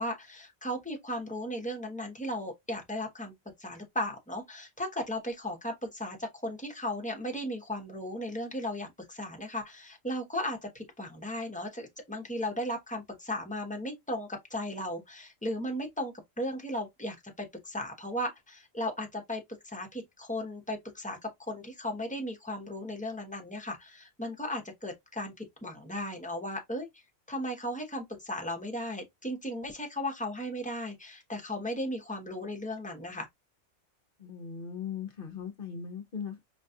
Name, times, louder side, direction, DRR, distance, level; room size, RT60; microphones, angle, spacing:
voice 1, 0.0-3.3 3.6-26.9 27.3-33.3, left 1 dB, 5° left, 0.7 m, -36 dB
voice 2, 34.2-36.4, left 7 dB, 50° left, 0.7 m, -39 dB
5.1 x 2.3 x 2.6 m
omnidirectional pair, 1.4 m